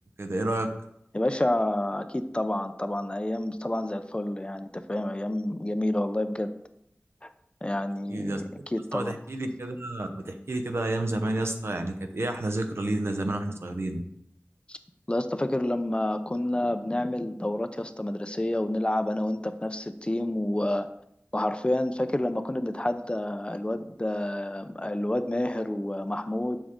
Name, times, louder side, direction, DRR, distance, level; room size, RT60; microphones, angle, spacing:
voice 1, 0.2-0.7 8.1-8.7 8.9-14.0, right 1 dB, 70° right, 5 dB, 0.8 m, -30 dB
voice 2, 1.1-6.5 7.6-9.1 14.7-14.8 15.1-20.9 21.3-26.6, left 1 dB, 25° left, 10 dB, 0.5 m, -29 dB
7.1 x 6.3 x 3.7 m, 0.77 s
wide cardioid pair, 55°, 4 cm